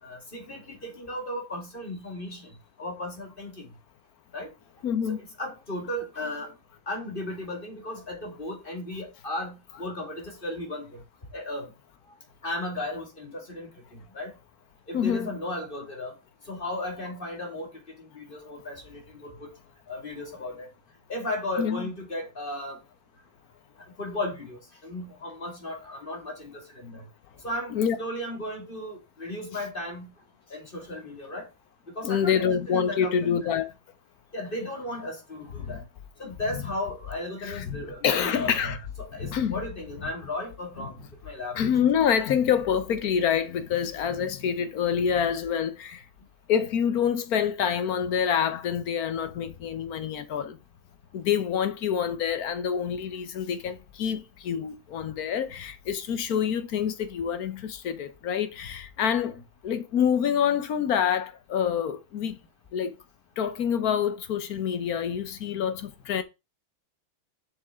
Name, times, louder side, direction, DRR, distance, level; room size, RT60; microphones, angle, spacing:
voice 1, 0.0-2.5 2.8-3.7 4.3-4.5 5.4-6.5 6.9-11.0 11.3-11.7 12.4-14.3 14.9-16.1 16.5-17.7 18.0-19.5 19.9-20.7 21.1-22.8 24.0-27.0 27.4-30.1 30.5-31.5 32.0-33.2 34.3-35.8 36.2-38.7 39.0-41.6, left 1 dB, 25° left, 2.1 m, -35 dB
voice 2, 4.8-5.2 14.9-15.3 18.4-18.5 21.6-21.9 27.7-28.0 32.0-33.7 35.6-35.8 37.4-37.8 38.0-38.8 39.2-39.6 41.5-46.1 46.5-50.6 51.1-62.4 62.7-63.0 63.4-66.2, left 8 dB, 55° left, 1.1 m, -27 dB
7.1 x 6.5 x 3.6 m
omnidirectional pair, 2.3 m